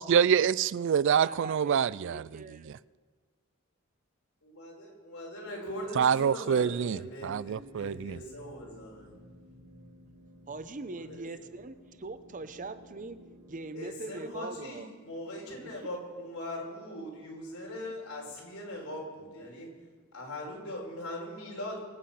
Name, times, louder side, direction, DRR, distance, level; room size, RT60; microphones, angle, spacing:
voice 1, 0.0-2.4 6.0-8.2, right 7 dB, 55° right, 0.3 m, -26 dB
voice 2, 1.2-2.7 10.5-13.2 13.5-14.9 15.6-15.7, right 3 dB, 35° right, 0.8 m, -41 dB
voice 3, 4.4-9.1 10.9-11.2 13.7-19.7 20.1-21.8, left 1 dB, 90° left, 4.8 m, -41 dB
sound 1, 6.9-13.9, equal, 90° right, 4.5 m, -56 dB
24.0 x 8.5 x 5.8 m
head